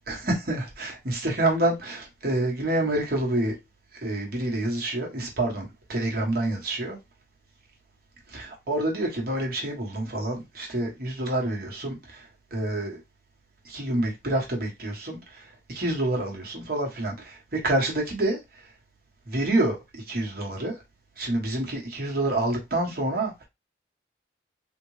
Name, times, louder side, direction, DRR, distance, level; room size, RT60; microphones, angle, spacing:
voice 1, 0.1-3.6 3.9-7.0 8.3-13.0 13.6-18.7 19.3-20.8 21.2-23.4, right 1 dB, 50° right, 1.2 m, -28 dB
3.7 x 2.5 x 3.1 m
head